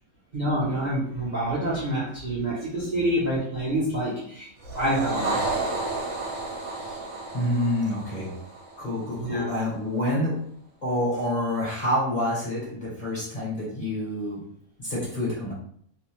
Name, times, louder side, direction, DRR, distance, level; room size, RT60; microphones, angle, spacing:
voice 1, 0.3-4.5 4.7-5.4 9.2-9.4, right 1 dB, 45° right, -8 dB, 0.6 m, -27 dB
sound 1, 4.6-9.2, right 2 dB, 65° right, 1.0 m, -32 dB
voice 2, 6.4-7.0 7.3-8.3 8.8-10.5 10.8-14.4 14.8-15.5, left 1 dB, 40° left, -6 dB, 0.8 m, -28 dB
2.6 x 2.0 x 2.9 m, 0.62 s
omnidirectional pair, 1.5 m